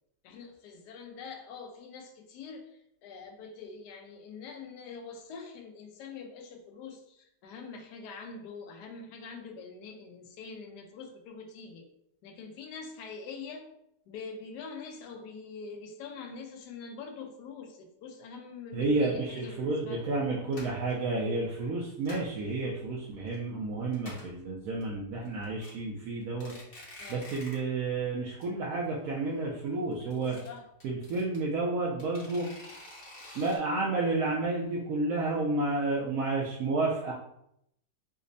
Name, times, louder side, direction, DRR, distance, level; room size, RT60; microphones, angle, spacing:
voice 1, 0.2-11.9 12.2-13.7 14.1-20.1 27.0-27.4 30.0-30.7, left 5 dB, 75° left, 3 dB, 1.1 m, -44 dB
voice 2, 18.7-26.5 27.1-30.4 30.8-32.5 33.3-37.1, right 3 dB, 70° right, -3 dB, 0.9 m, -31 dB
sound 1, 19.4-19.5 20.0-20.2 20.5-20.9 21.6-22.4 22.8-23.4 23.6-23.7 23.9-24.4 24.8-24.9 25.3-25.7 26.2-27.7 28.0-28.1 28.4-28.5 28.8-28.9 29.9-31.4 32.0-33.6, left 1 dB, 40° left, 0.9 m, -48 dB
5.0 x 2.1 x 2.5 m, 0.77 s
omnidirectional pair, 1.9 m